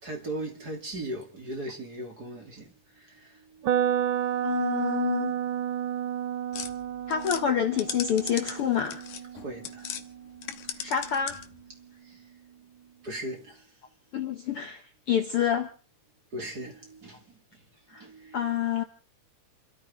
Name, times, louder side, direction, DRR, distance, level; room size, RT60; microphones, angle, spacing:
voice 1, 0.0-4.0 4.3-4.5 9.3-10.0 10.6-10.9 12.0-12.3 13.0-13.8 16.3-18.6, right 1 dB, 30° right, 3.1 m, -39 dB
sound 1, 3.6-11.6, right 10 dB, 80° right, 1.1 m, -31 dB
voice 2, 4.4-5.3 7.1-9.0 10.8-11.4 14.1-15.7 17.9-18.1 18.3-18.8, left 9 dB, 60° left, 1.6 m, -27 dB
sound 2, 6.5-10.0 10.4-11.6, left 10 dB, 75° left, 2.5 m, -38 dB
29.0 x 13.5 x 3.6 m
omnidirectional pair, 3.6 m